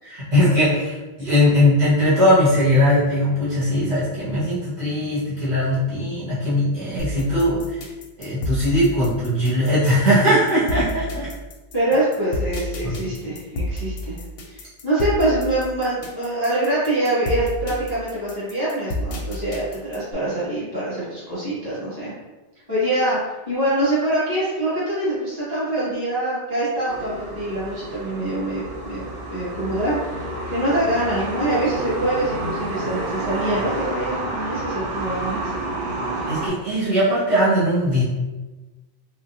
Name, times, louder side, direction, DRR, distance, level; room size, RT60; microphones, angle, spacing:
voice 1, 0.0-7.8 8.2-11.3 12.8-12.9 36.3-38.0, left 1 dB, 65° right, -12 dB, 1.5 m, -20 dB
sound 1, 7.0-20.1, left 1 dB, 65° left, 0.7 m, -30 dB
voice 2, 11.7-14.2 14.5-22.1 22.7-29.0 29.3-35.5, right 1 dB, 20° right, -12 dB, 1.5 m, -24 dB
sound 2, 26.9-36.5, right 2 dB, 85° right, 1.0 m, -29 dB
3.7 x 2.1 x 2.6 m, 1.2 s
omnidirectional pair, 1.2 m